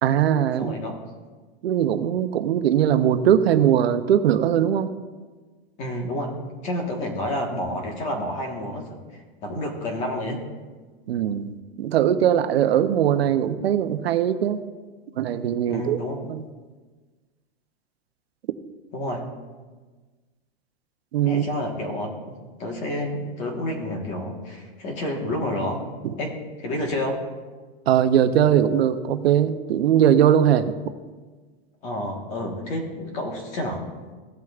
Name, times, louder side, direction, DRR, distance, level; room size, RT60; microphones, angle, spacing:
voice 1, 0.0-0.8 1.6-4.9 11.1-14.6 15.2-16.0 16.3-16.4 21.1-21.4 26.0-26.1 27.9-30.7, right 10 dB, 80° right, 9 dB, 0.8 m, -20 dB
voice 2, 0.6-1.0 5.8-10.5 15.7-16.2 18.9-19.3 21.2-25.8 26.2-27.2 31.8-33.8, left 1 dB, 25° left, 2 dB, 1.4 m, -30 dB
16.0 x 7.6 x 2.4 m, 1.4 s
supercardioid pair, 175°, 30 cm